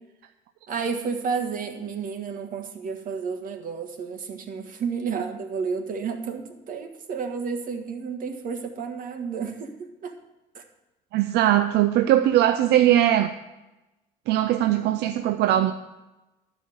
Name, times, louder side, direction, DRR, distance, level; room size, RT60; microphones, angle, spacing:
voice 1, 0.7-10.1 10.5-10.6, right 5 dB, 55° right, 4 dB, 1.6 m, -31 dB
voice 2, 11.1-13.3 14.3-15.7, right 12 dB, 80° right, 8 dB, 0.5 m, -20 dB
12.0 x 5.0 x 7.9 m, 1.0 s
cardioid pair, 110°, 17 cm